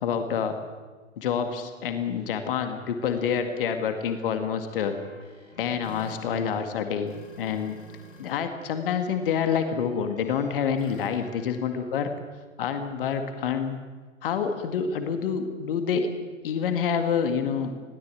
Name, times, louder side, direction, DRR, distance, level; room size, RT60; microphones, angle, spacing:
voice 1, 0.0-0.6 1.2-5.0 5.6-7.8 8.2-12.1 12.6-13.8 14.2-16.1 16.4-17.7, left 7 dB, 45° left, 7 dB, 2.1 m, -27 dB
sound 1, 2.1-8.3 8.6-11.9, left 1 dB, 75° left, 6.1 m, -52 dB
21.5 x 16.5 x 8.6 m, 1.4 s
figure-of-eight pair, 120°, 39 cm